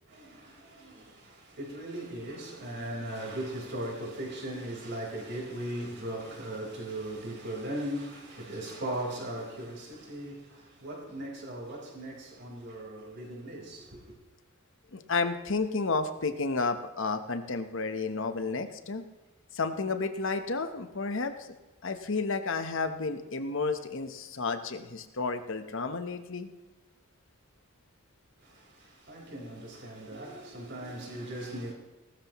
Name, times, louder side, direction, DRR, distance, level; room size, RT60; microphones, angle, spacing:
voice 1, 0.1-14.2 28.4-31.7, right 1 dB, 55° right, 4.4 m, -38 dB
voice 2, 14.9-19.0 19.5-21.5 21.8-26.5, left 4 dB, 65° left, 1.1 m, -31 dB
18.5 x 13.0 x 3.1 m
head